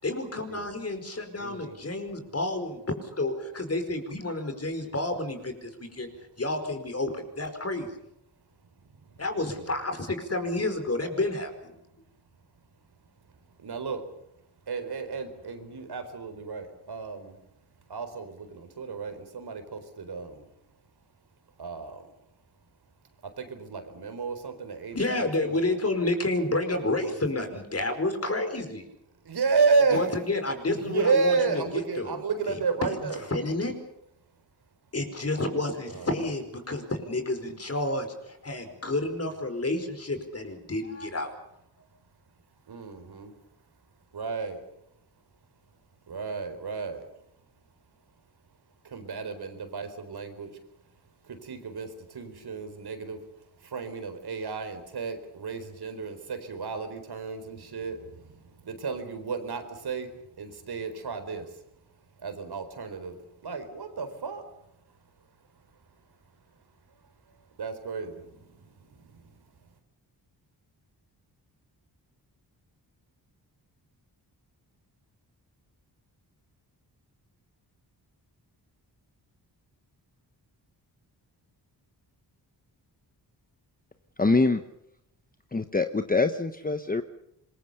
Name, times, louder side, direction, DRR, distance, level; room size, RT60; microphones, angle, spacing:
voice 1, 0.0-6.1 6.4-7.9 9.2-11.7 24.9-28.9 29.9-32.2 32.5-32.9 33.3-33.7 34.9-41.3, left 2 dB, 35° left, 7 dB, 4.8 m, -30 dB
voice 2, 1.4-1.8 8.9-9.1 9.5-9.8 13.6-14.0 14.7-17.3 17.9-20.4 21.6-22.1 23.2-25.6 27.0-27.2 29.2-30.0 30.7-33.2 35.9-36.3 42.7-43.3 44.1-44.6 46.1-47.1 48.8-50.6 51.2-53.2 53.6-61.6 62.2-64.4 67.6-69.5, right 4 dB, 65° right, 8 dB, 4.4 m, -32 dB
voice 3, 84.2-84.6 85.5-87.0, left 3 dB, 20° left, 8 dB, 1.1 m, -24 dB
26.5 x 22.0 x 6.9 m, 0.78 s
wide cardioid pair, 105°, 41 cm